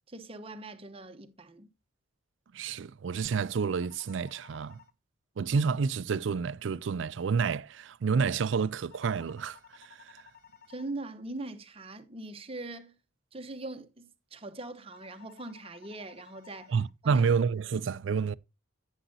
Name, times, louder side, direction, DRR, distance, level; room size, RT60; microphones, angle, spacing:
voice 1, 0.1-1.7 10.7-12.9 13.3-16.7 17.0-17.2, right 2 dB, 30° right, 0.9 m, -41 dB
voice 2, 2.5-4.8 5.4-10.2 16.7-18.3, right 5 dB, 65° right, 0.4 m, -29 dB
sound 1, 3.8-4.9 8.9-10.9 14.9-16.9, left 8 dB, 50° left, 0.8 m, -56 dB
10.0 x 9.1 x 2.7 m
head